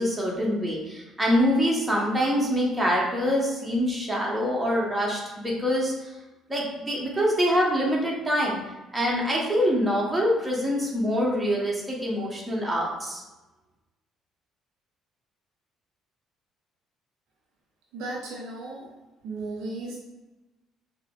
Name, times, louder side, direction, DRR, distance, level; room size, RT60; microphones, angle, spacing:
voice 1, 0.0-6.1 6.5-8.6 8.9-13.2, equal, 15° right, -3 dB, 1.2 m, -25 dB
voice 2, 17.9-18.9 19.2-20.0, right 2 dB, 65° right, -4 dB, 0.6 m, -35 dB
5.4 x 2.1 x 2.4 m, 1.1 s
hypercardioid pair, 50°, 0 cm